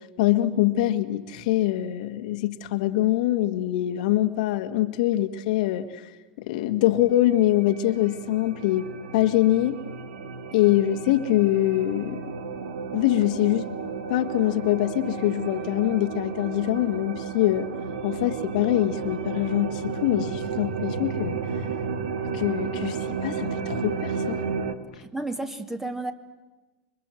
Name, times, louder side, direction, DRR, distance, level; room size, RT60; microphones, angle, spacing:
voice 1, 0.2-6.1 6.4-9.8 10.5-12.3 12.9-13.7 14.1-17.7 18.0-21.4 22.3-24.4, left 14 dB, 60° left, 8 dB, 1.7 m, -24 dB
sound 1, 7.0-24.7, right 5 dB, 70° right, 2.0 m, -33 dB
voice 2, 24.9-26.1, right 2 dB, 5° right, 7 dB, 2.3 m, -32 dB
27.0 x 24.0 x 7.8 m, 1.2 s
hypercardioid pair, 95°, 5 cm